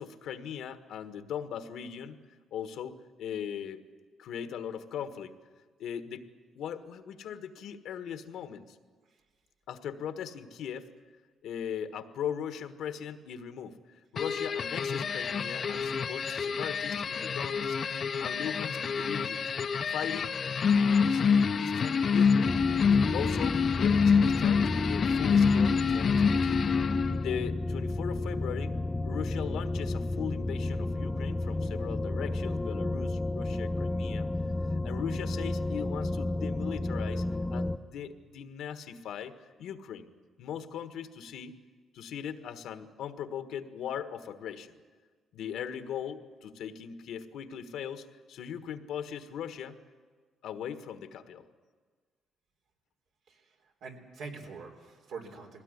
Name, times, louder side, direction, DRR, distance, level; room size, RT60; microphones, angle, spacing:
voice 1, 0.0-2.2 2.5-3.8 4.2-5.3 5.8-6.3 6.5-8.8 9.7-10.9 11.4-13.8 14.1-17.8 18.2-19.4 19.9-20.4 20.6-22.6 23.1-26.7 27.2-28.8 29.0-34.3 34.8-37.2 37.5-39.3 39.6-40.1 40.4-41.6 41.9-44.7 45.3-49.8 50.4-51.5, left 8 dB, 80° left, 9 dB, 1.4 m, -39 dB
sound 1, 14.2-27.3, left 6 dB, 50° left, 0.7 m, -27 dB
sound 2, 22.4-37.8, left 2 dB, 15° left, 0.7 m, -32 dB
voice 2, 53.8-55.6, right 4 dB, 80° right, 2 dB, 3.6 m, -44 dB
20.5 x 17.0 x 9.8 m, 1.5 s
cardioid pair, 90°, 0 cm